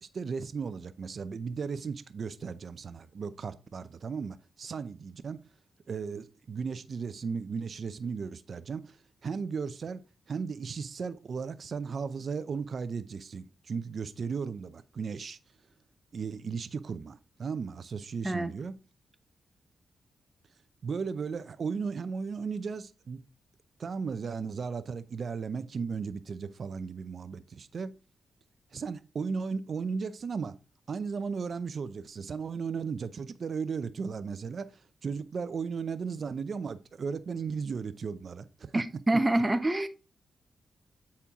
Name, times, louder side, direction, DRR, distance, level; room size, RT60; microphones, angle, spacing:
voice 1, 0.0-5.4 5.9-9.0 9.2-10.0 10.3-15.4 16.1-18.7 20.8-23.2 23.8-27.9 28.7-30.6 30.9-34.7 35.0-38.8, right 5 dB, 55° right, 0.6 m, -35 dB
voice 2, 38.7-39.9, right 1 dB, 20° right, 0.8 m, -26 dB
8.4 x 4.4 x 3.6 m
cardioid pair, 80°, 0 cm